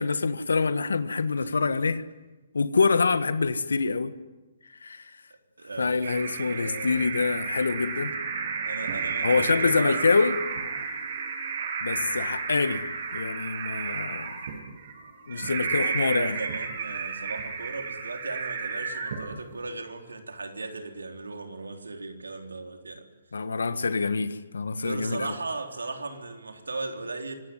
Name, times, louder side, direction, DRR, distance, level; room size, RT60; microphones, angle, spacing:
voice 1, 0.0-2.0 2.5-4.1 4.8-5.0 5.8-8.1 9.2-10.4 11.8-12.8 13.1-14.3 15.3-16.4 23.3-25.3, left 4 dB, 85° left, 1.5 m, -25 dB
voice 2, 5.6-7.0 8.7-10.0 12.1-12.2 15.3-23.1 24.8-27.3, right 3 dB, 90° right, 3.7 m, -37 dB
sound 1, 6.0-19.5, right 5 dB, 60° right, 6.8 m, -32 dB
25.5 x 17.0 x 9.4 m
hypercardioid pair, 135°, 0 cm